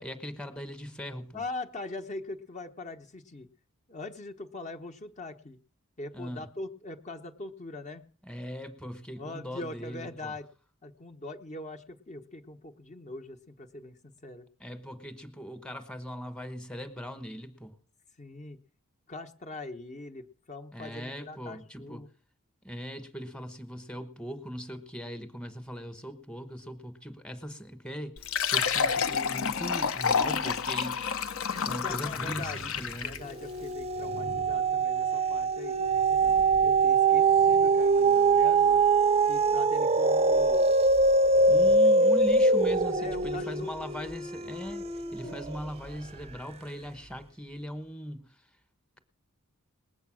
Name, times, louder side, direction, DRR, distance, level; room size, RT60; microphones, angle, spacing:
voice 1, 0.0-1.4 6.1-6.4 8.2-10.3 14.6-17.8 20.7-22.0 22.6-31.0 31.6-33.2 41.5-48.2, equal, 5° left, 9 dB, 1.2 m, -39 dB
voice 2, 1.3-3.5 3.9-5.6 6.0-8.1 9.2-10.5 10.8-14.5 18.2-18.6 19.1-22.1 31.3-32.6 33.0-36.4 36.6-38.8 39.3-40.7 42.9-43.8 45.2-45.4, left 2 dB, 35° left, 4 dB, 1.0 m, -42 dB
Fill (with liquid), 28.2-33.3, left 6 dB, 65° left, 0.9 m, -29 dB
sound 1, 32.3-32.8 33.2-45.7 46.2-46.3, right 3 dB, 30° right, 0.6 m, -23 dB
20.0 x 8.1 x 6.2 m, 0.42 s
head